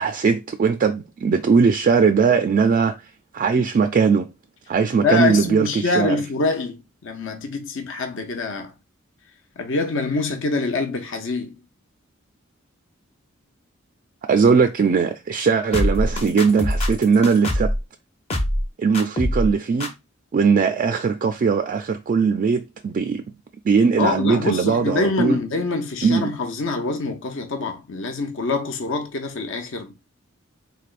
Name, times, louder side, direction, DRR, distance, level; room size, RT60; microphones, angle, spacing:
voice 1, 0.0-3.0 3.3-4.3 4.7-6.2 14.3-17.7 18.8-19.9 20.3-23.2 23.6-25.4 26.0-26.3, right 5 dB, 40° right, 0.3 m, -19 dB
voice 2, 5.0-8.7 9.6-11.6 24.0-29.9, left 3 dB, 65° left, 0.7 m, -25 dB
sound 1, 15.7-17.8 18.3-18.7 18.9-19.5 19.8-19.9, equal, 30° left, 0.7 m, -23 dB
3.8 x 3.3 x 2.4 m
head